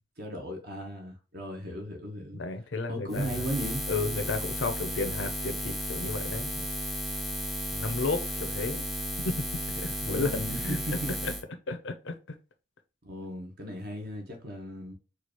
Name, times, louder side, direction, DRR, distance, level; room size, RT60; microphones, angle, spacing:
voice 1, 0.2-2.4 2.9-3.8 10.0-11.1 13.0-14.9, equal, 55° right, 1.0 m, -36 dB
voice 2, 2.3-3.5 3.9-6.7 7.7-8.8 9.2-9.4 9.8-11.3 11.7-12.4, left 3 dB, 70° left, 0.6 m, -33 dB
Buzz, 3.1-11.4, equal, ahead, 0.4 m, -34 dB
4.5 x 2.4 x 3.0 m
head